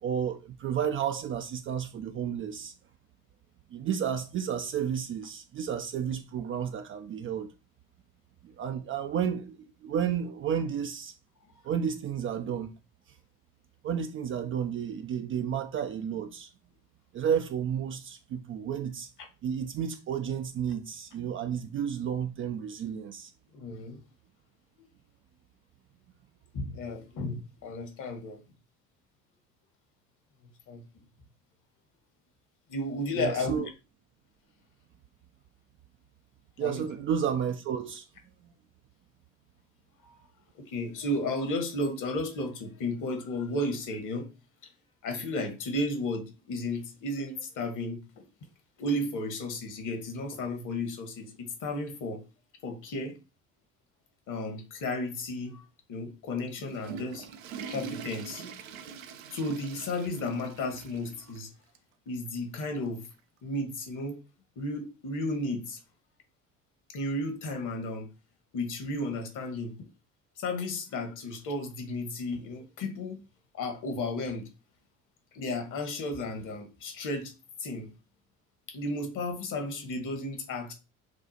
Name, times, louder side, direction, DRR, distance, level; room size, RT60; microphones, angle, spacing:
voice 1, 0.0-2.7 3.7-7.5 8.4-11.1 11.6-12.7 13.8-16.5 17.1-19.1 19.4-23.3 33.2-33.7 36.6-38.1 38.4-38.5, right 8 dB, 30° right, 0.4 m, -32 dB
voice 2, 23.5-24.0 26.5-28.4 30.7-30.8 32.7-33.7 36.6-36.8 40.0-40.2 40.6-44.3 45.0-48.2 48.8-52.2 52.6-53.1 54.3-55.6 55.9-57.3 57.7-58.4 59.3-61.5 62.1-63.0 63.4-64.2 64.6-65.8 66.9-68.1 68.5-69.9 70.4-73.2 73.5-74.5 75.3-77.3 77.6-77.9 78.7-80.7, left 2 dB, 50° left, 1.3 m, -33 dB
Water / Toilet flush, 56.4-61.4 61.7-61.8 62.6-62.7 64.0-64.1, right 6 dB, 75° right, 0.6 m, -43 dB
6.3 x 2.4 x 2.8 m
figure-of-eight pair, 55°, 41 cm